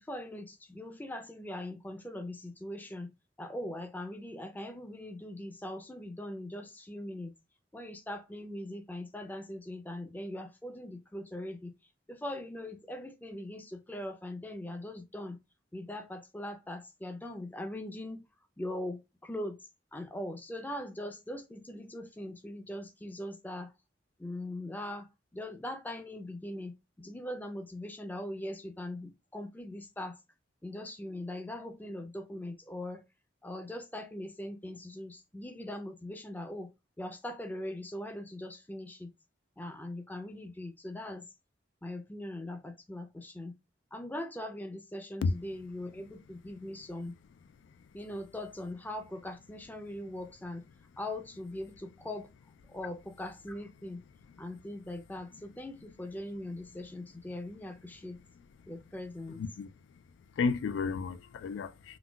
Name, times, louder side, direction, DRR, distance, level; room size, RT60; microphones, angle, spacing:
voice 1, 0.1-3.1 3.4-7.3 7.7-11.7 12.1-15.4 15.7-18.3 18.6-19.6 19.9-23.7 24.2-25.1 25.3-26.7 27.0-30.1 30.6-33.0 33.4-36.7 37.0-39.1 39.6-41.2 41.8-43.5 43.9-47.1 47.9-50.6 51.0-52.3 52.7-54.0 54.4-58.2 58.7-59.4, left 1 dB, 10° left, 0.4 m, -41 dB
voice 2, 59.4-59.7 60.4-62.0, left 4 dB, 85° left, 0.3 m, -32 dB
3.9 x 2.2 x 2.2 m
head